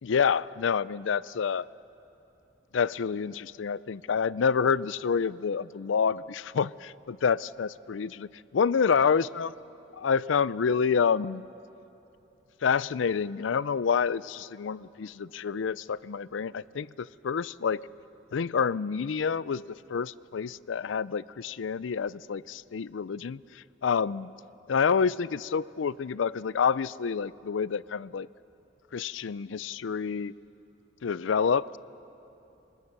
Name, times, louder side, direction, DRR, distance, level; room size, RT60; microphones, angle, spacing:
voice 1, 0.0-1.7 2.7-9.5 9.9-11.5 12.6-17.8 18.3-19.6 19.9-24.3 24.7-28.3 28.9-30.3 31.0-31.8, left 6 dB, 85° left, 20 dB, 0.4 m, -28 dB
27.5 x 22.0 x 6.7 m, 2.9 s
head